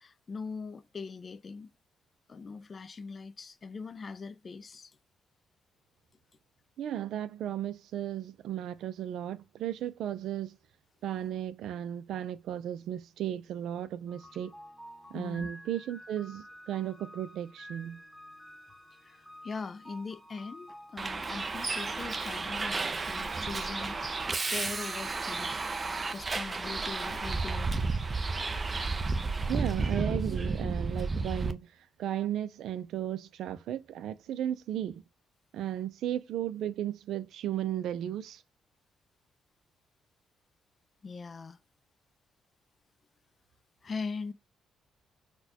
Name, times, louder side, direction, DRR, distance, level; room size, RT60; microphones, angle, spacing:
voice 1, 0.0-1.7 2.3-5.0 15.1-15.5 19.0-24.0 24.5-25.5 26.1-27.7 41.0-41.6 43.8-44.3, left 4 dB, 35° left, 0.4 m, -41 dB
voice 2, 6.8-10.6 11.0-14.5 15.1-18.0 29.5-35.0 35.5-38.4, right 11 dB, 80° right, 0.5 m, -35 dB
sound 1, 14.1-26.1, equal, ahead, 1.0 m, -51 dB
Bus, 21.0-31.5, right 3 dB, 30° right, 0.5 m, -32 dB
4.2 x 2.3 x 2.7 m
cardioid pair, 90°, 0 cm